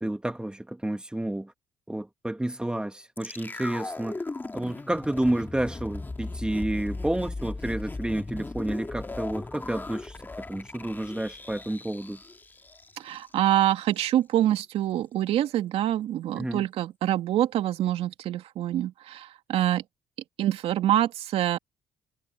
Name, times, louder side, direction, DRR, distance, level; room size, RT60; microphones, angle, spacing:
voice 1, 0.0-1.5 1.9-4.2 4.5-12.2 16.3-16.7, right 1 dB, 10° right, 2.2 m, -30 dB
sound 1, 3.2-13.3 13.6-13.7, left 3 dB, 20° left, 2.2 m, -37 dB
voice 2, 13.0-19.8 20.4-21.6, right 12 dB, 70° right, 2.5 m, -25 dB
supercardioid pair, 75°, 10 cm